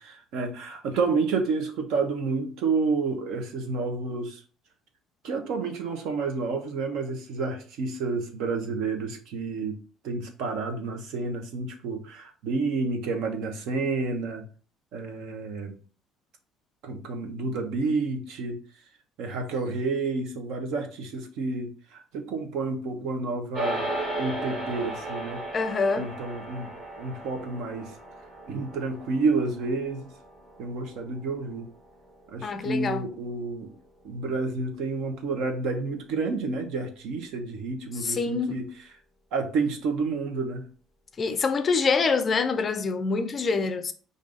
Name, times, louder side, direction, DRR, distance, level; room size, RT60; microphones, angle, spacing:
voice 1, 0.0-4.4 5.2-9.8 10.0-14.4 14.9-15.8 16.8-18.6 19.2-25.4 25.9-26.7 27.0-27.9 28.5-30.1 30.6-31.7 32.3-33.7 34.0-38.6 39.3-40.6, right 4 dB, 65° right, 1.0 m, -30 dB
sound 1, 23.5-33.1, right 1 dB, 30° right, 1.6 m, -36 dB
voice 2, 25.5-26.1 32.4-33.0 38.0-38.6 41.2-43.9, left 4 dB, 25° left, 0.4 m, -25 dB
5.2 x 2.7 x 3.8 m
cardioid pair, 160°, 0 cm